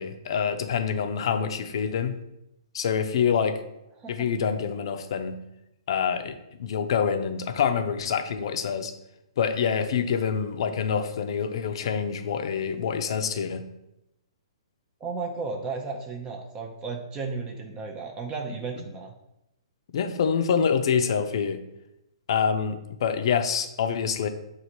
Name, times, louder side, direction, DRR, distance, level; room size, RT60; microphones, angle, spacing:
voice 1, 0.0-2.1 2.7-3.6 4.1-5.4 5.9-8.9 9.4-13.6 19.9-21.6 22.3-24.3, left 7 dB, 60° left, 8 dB, 0.5 m, -26 dB
voice 2, 15.0-19.1, right 4 dB, 20° right, 2 dB, 0.5 m, -34 dB
6.4 x 2.5 x 2.8 m, 0.86 s
hypercardioid pair, 135°, 3 cm